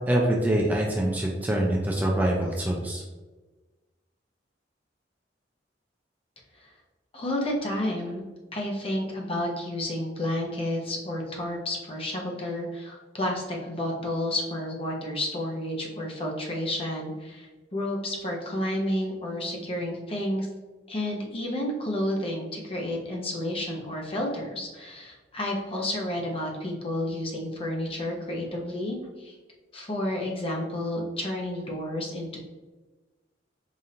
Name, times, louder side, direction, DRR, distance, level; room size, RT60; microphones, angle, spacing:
voice 1, 0.1-3.0, right 1 dB, 10° right, -2 dB, 0.4 m, -25 dB
voice 2, 7.1-8.2 8.5-20.5 20.9-29.4 29.7-32.4, left 1 dB, 30° left, -1 dB, 0.8 m, -31 dB
4.9 x 2.7 x 2.7 m, 1.2 s
head